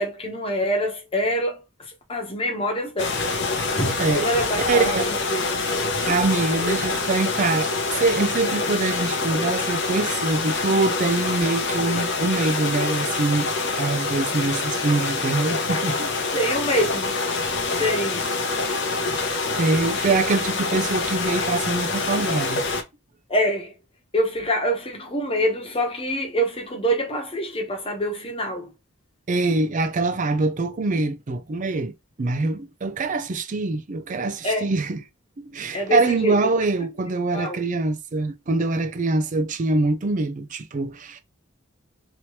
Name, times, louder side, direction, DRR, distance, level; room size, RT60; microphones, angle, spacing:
voice 1, 0.0-3.2 3.8-5.4 6.6-6.8 16.3-17.2 17.8-18.4 23.3-23.8 24.1-28.7 34.4-34.7 35.7-36.5 37.3-37.6, equal, 25° left, 0.9 m, -25 dB
sound 1, 3.0-22.8, left 3 dB, 55° left, 0.6 m, -26 dB
voice 2, 4.7-5.1 6.1-13.5 13.8-16.1 19.0-19.3 19.6-22.6 29.3-35.0 35.4-41.2, right 3 dB, 40° right, 0.4 m, -24 dB
3.0 x 2.9 x 3.0 m
head